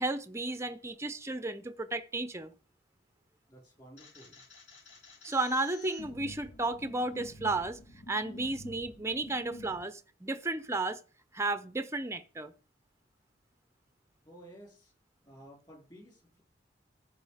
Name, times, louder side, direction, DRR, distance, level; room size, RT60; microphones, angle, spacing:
voice 1, 0.0-2.5 5.2-7.8 8.1-11.0 11.3-12.5, right 2 dB, 15° right, 0.7 m, -33 dB
voice 2, 3.5-4.4 14.2-14.9 15.2-16.4, right 1 dB, 25° left, 4.7 m, -53 dB
sound 1, 4.0-9.8, left 1 dB, 70° left, 4.5 m, -49 dB
15.0 x 5.5 x 5.0 m
head